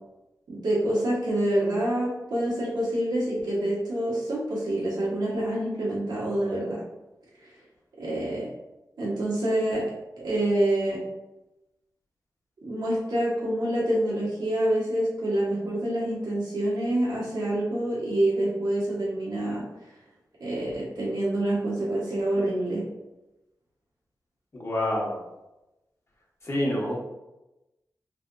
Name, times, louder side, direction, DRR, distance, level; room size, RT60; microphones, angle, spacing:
voice 1, 0.5-6.8 7.4-7.5 8.0-8.5 9.0-9.8 10.2-11.0 12.6-19.7 20.4-22.8, right 1 dB, 90° right, -7 dB, 1.2 m, -27 dB
voice 2, 24.5-25.2 26.4-27.0, left 1 dB, 40° left, -3 dB, 1.0 m, -27 dB
3.3 x 2.8 x 2.6 m, 0.99 s
cardioid pair, 60°, 7 cm